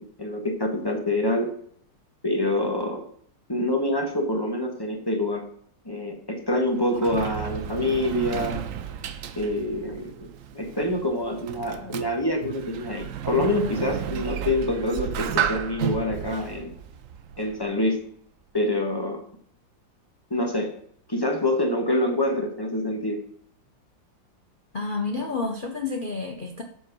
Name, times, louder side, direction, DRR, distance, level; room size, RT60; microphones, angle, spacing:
voice 1, 0.0-1.5 2.2-3.0 3.5-5.5 5.8-8.6 9.4-16.7 17.4-18.0 18.5-19.2 20.3-20.7 21.1-23.2, left 1 dB, 15° left, 1.1 m, -26 dB
Sliding door, 6.5-17.9, right 9 dB, 65° right, 0.8 m, -33 dB
voice 2, 24.7-26.6, left 3 dB, 65° left, 0.5 m, -29 dB
7.5 x 5.4 x 6.1 m
omnidirectional pair, 2.0 m